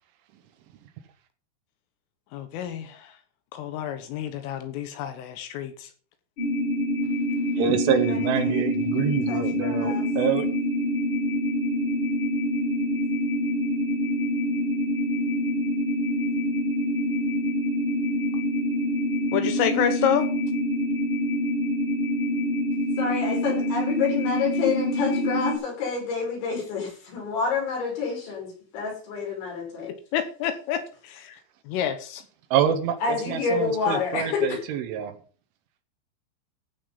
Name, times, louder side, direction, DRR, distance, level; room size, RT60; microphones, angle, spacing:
voice 1, 2.3-3.1 3.5-5.9 19.3-20.3 30.1-31.4 31.7-32.2, left 9 dB, 80° left, 9 dB, 3.6 m, -28 dB
sound 1, 6.4-25.6, equal, 25° left, 3.6 m, -26 dB
voice 2, 7.6-10.5 32.5-35.1, right 8 dB, 75° right, 8 dB, 3.4 m, -26 dB
voice 3, 9.3-10.1 23.0-29.9 33.0-34.6, left 5 dB, 60° left, -1 dB, 7.5 m, -28 dB
15.0 x 7.0 x 5.5 m, 0.41 s
omnidirectional pair, 5.9 m